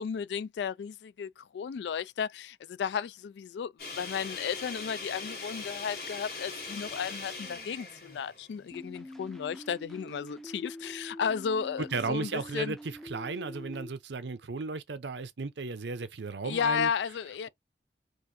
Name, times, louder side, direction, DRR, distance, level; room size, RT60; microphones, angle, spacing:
voice 1, 0.0-12.8 16.4-17.5, left 7 dB, 80° left, 0.3 m, -34 dB
sound 1, 3.8-9.0, left 3 dB, 60° left, 2.1 m, -41 dB
sound 2, 8.7-13.9, left 1 dB, 5° left, 0.4 m, -45 dB
voice 2, 11.9-16.9, right 4 dB, 90° right, 0.7 m, -35 dB
4.6 x 2.5 x 2.6 m
head